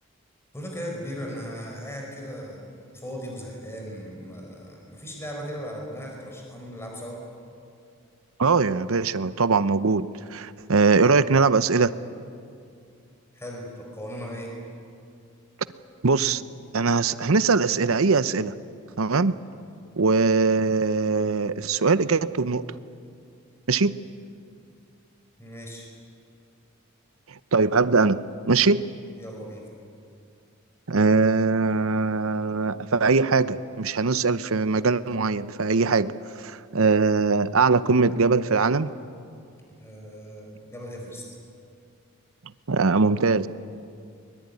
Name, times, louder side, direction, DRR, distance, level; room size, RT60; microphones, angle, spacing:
voice 1, 0.5-7.2 13.3-14.5 25.4-25.9 29.2-29.7 39.7-41.2, equal, 10° left, 0 dB, 4.8 m, -37 dB
voice 2, 8.4-11.9 16.0-16.4 16.7-18.5 19.0-19.4 20.0-22.6 23.7-24.0 27.5-28.9 30.9-36.1 36.4-38.9 42.7-43.5, right 4 dB, 75° right, 15 dB, 0.8 m, -21 dB
23.0 x 22.0 x 9.7 m, 2.5 s
head